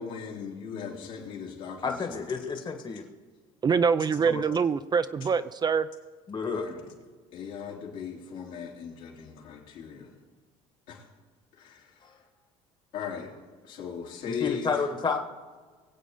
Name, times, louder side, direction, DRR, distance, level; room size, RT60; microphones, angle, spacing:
voice 1, 0.0-2.4 6.5-6.9 7.3-10.1 10.9-11.1 11.5-12.1 12.9-14.8, left 7 dB, 75° left, 3.3 m, -39 dB
voice 2, 1.8-3.0 4.2-4.4 6.3-6.7 12.0-12.1 14.3-15.2, left 5 dB, 30° left, 1.6 m, -30 dB
voice 3, 3.6-5.9, right 6 dB, 30° right, 0.5 m, -24 dB
22.5 x 8.2 x 3.8 m
supercardioid pair, 95°, 14 cm